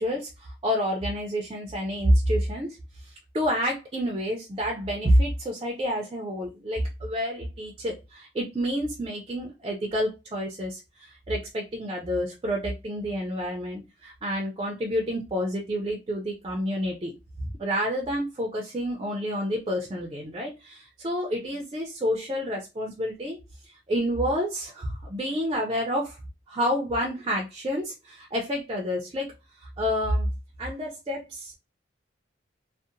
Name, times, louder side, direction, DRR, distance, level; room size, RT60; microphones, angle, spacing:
voice 1, 0.0-17.1 17.6-23.4 23.6-26.2 26.5-30.3 30.6-31.5, equal, 25° right, 0.3 m, -28 dB
2.7 x 2.0 x 2.5 m
head